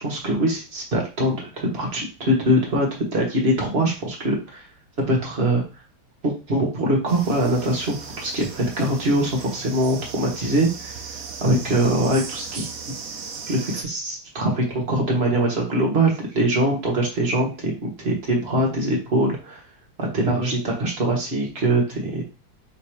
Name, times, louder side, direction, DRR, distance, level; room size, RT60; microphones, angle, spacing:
voice 1, 0.0-4.7 5.1-5.6 6.2-11.0 11.4-12.7 13.5-19.6 20.0-22.2, right 1 dB, 35° right, -1 dB, 1.2 m, -23 dB
sound 1, 7.1-13.8, right 5 dB, 80° right, 0.7 m, -37 dB
3.6 x 2.8 x 4.5 m, 0.32 s
omnidirectional pair, 2.2 m